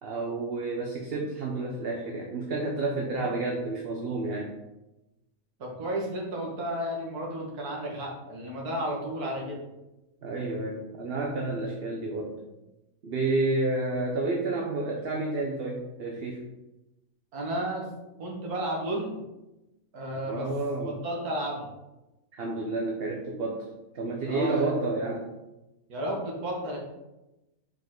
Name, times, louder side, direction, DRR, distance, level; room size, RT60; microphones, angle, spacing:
voice 1, 0.0-4.5 10.2-12.4 13.0-16.4 20.3-21.0 22.4-23.7 23.9-25.3, right 2 dB, 50° right, 0 dB, 0.8 m, -30 dB
voice 2, 5.6-9.6 17.3-17.9 18.2-19.2 19.9-20.5 20.8-21.7 24.3-24.7 25.9-26.8, right 1 dB, 80° right, -1 dB, 2.0 m, -32 dB
5.6 x 5.1 x 3.7 m, 0.98 s
omnidirectional pair, 1.6 m